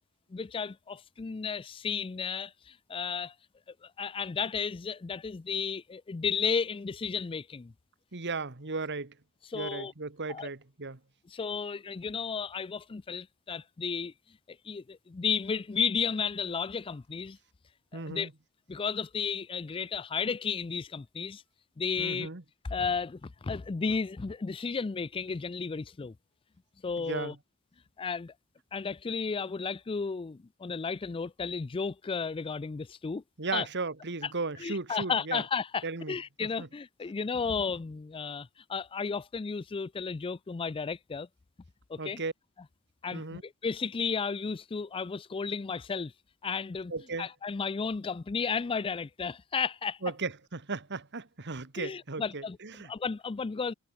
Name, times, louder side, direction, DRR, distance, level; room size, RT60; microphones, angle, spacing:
voice 1, 0.3-3.3 3.8-7.7 9.5-9.9 10.3-10.5 11.3-14.1 14.5-17.4 17.9-18.3 18.7-21.4 21.8-22.3 22.7-26.1 26.8-27.3 28.0-28.3 28.7-33.2 33.5-33.7 34.2-34.3 34.6-41.3 41.9-42.2 43.0-46.1 46.4-46.9 47.2-50.0 51.8-52.6 52.9-53.7, left 5 dB, 25° left, 0.4 m, -33 dB
voice 2, 8.1-9.1 9.5-11.0 17.9-18.3 22.0-22.4 27.0-27.4 33.4-35.4 35.8-36.7 42.0-42.3 43.1-43.4 46.9-47.3 50.0-52.9, right 3 dB, 50° right, 1.8 m, -36 dB
head